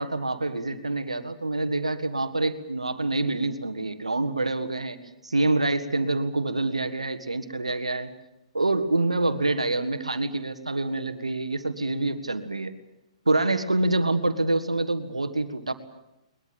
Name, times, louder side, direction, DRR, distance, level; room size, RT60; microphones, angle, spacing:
voice 1, 0.0-5.0 5.2-8.1 8.5-12.8 13.2-15.7, right 2 dB, 80° right, 10 dB, 1.8 m, -26 dB
21.5 x 21.0 x 9.1 m, 0.90 s
figure-of-eight pair, 115°, 3 cm